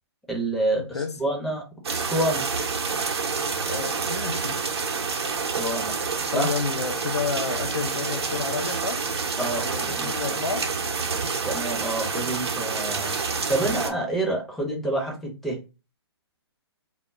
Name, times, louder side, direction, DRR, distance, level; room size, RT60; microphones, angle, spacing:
voice 1, 0.3-1.6 1.9-2.5 5.4-5.9 6.3-6.5 9.4-10.4 11.1-13.2 13.5-15.6, right 1 dB, ahead, 0.6 m, -28 dB
sound 1, 1.8-13.9, right 5 dB, 70° right, 0.6 m, -28 dB
voice 2, 3.6-4.6 6.3-9.0 9.4-10.7 13.3-13.5, left 5 dB, 85° left, 0.5 m, -30 dB
2.0 x 2.0 x 3.4 m
figure-of-eight pair, 130°, 14 cm